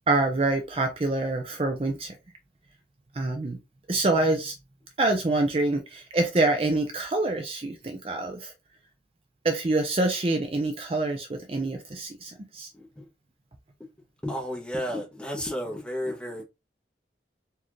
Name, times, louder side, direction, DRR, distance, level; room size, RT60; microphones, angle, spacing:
voice 1, 0.1-2.2 3.1-3.6 3.9-4.5 5.0-8.5 9.4-12.7, right 2 dB, 35° right, 0.5 m, -26 dB
voice 2, 12.7-13.1 14.2-16.4, equal, 5° left, 1.1 m, -32 dB
4.1 x 2.6 x 3.1 m
head